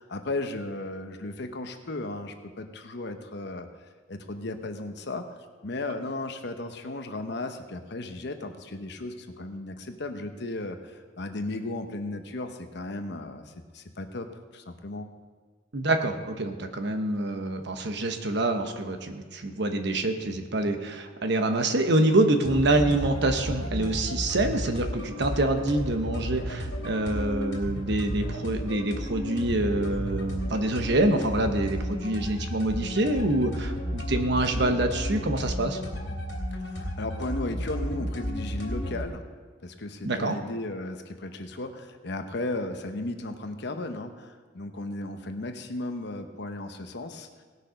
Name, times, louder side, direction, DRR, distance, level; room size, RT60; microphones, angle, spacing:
voice 1, 0.0-3.7 4.1-14.3 14.5-15.1 36.6-39.2 39.6-47.3, left 2 dB, 65° left, 7 dB, 1.0 m, -35 dB
voice 2, 15.7-35.8 40.0-40.4, right 2 dB, 65° right, 7 dB, 1.0 m, -26 dB
sound 1, 22.4-39.1, equal, 80° left, 3.0 m, -33 dB
18.0 x 6.5 x 5.1 m, 1.5 s
head